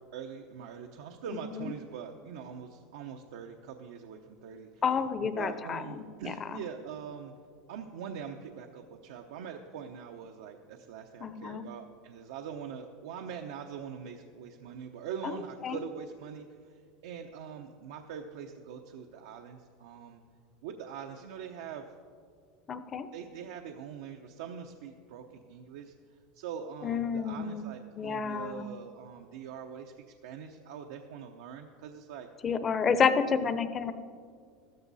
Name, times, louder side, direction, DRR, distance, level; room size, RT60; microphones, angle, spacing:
voice 1, 0.0-4.8 5.2-7.3 7.7-20.2 20.6-21.8 23.1-32.3, right 7 dB, 85° right, 3 dB, 0.8 m, -43 dB
voice 2, 4.8-6.0 6.5-6.6 11.2-11.6 15.2-15.3 15.6-15.8 22.7-23.1 26.8-27.6 28.0-28.6 32.4-33.9, left 6 dB, 25° left, 12 dB, 0.7 m, -29 dB
14.0 x 13.5 x 4.1 m, 2.1 s
supercardioid pair, 145°, 0 cm